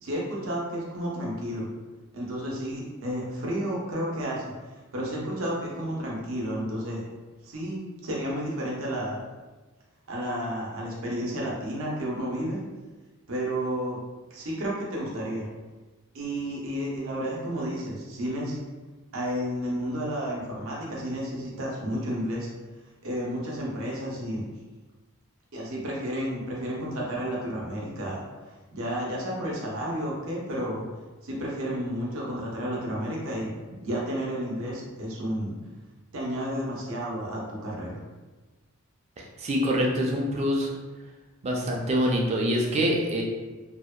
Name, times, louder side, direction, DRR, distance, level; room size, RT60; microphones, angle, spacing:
voice 1, 0.0-1.7 2.1-4.4 4.9-7.0 7.4-9.2 10.1-12.6 13.3-14.0 14.3-15.5 16.1-18.6 19.1-22.5 23.0-24.4 25.5-28.2 28.7-30.9 31.2-35.5 36.1-38.0, equal, 70° right, -4 dB, 0.6 m, -31 dB
voice 2, 39.2-40.7 41.4-43.2, equal, 30° right, -1 dB, 0.3 m, -25 dB
2.7 x 2.1 x 2.3 m, 1.2 s
head